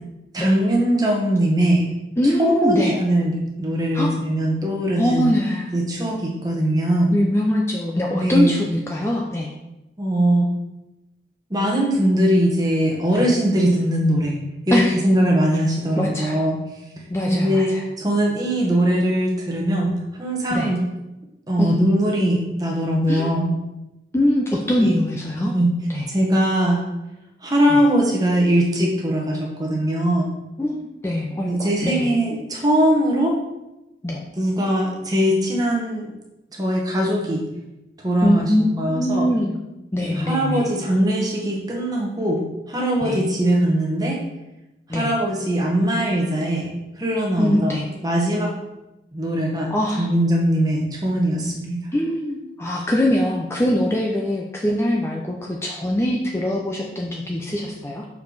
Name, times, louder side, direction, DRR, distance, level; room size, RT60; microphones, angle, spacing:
voice 1, 0.3-1.9 2.2-5.3 5.7-7.1 8.1-8.5 10.0-10.5 11.5-14.4 14.7-16.6 17.2-19.9 20.2-20.8 21.5-23.5 24.8-25.0 25.4-25.7 26.1-26.8 27.4-30.3 31.4-33.3 34.4-36.1 36.5-37.4 38.0-39.3 40.0-42.4 42.7-44.2 44.9-48.5 49.1-49.7 50.0-51.8, right 1 dB, 20° right, -1 dB, 1.3 m, -21 dB
voice 2, 2.2-2.9 3.9-4.2 5.0-5.6 7.1-9.5 13.1-13.3 14.7-15.0 16.0-16.4 17.1-17.8 20.5-20.7 21.6-21.8 23.1-23.3 24.1-25.6 25.9-26.1 27.7-27.8 30.6-32.1 34.0-34.2 38.2-39.6 39.9-40.7 43.0-43.2 44.9-45.1 47.4-47.9 49.7-50.1 51.9-58.1, left 1 dB, 15° left, 0 dB, 0.5 m, -22 dB
6.6 x 4.7 x 4.0 m, 0.96 s
head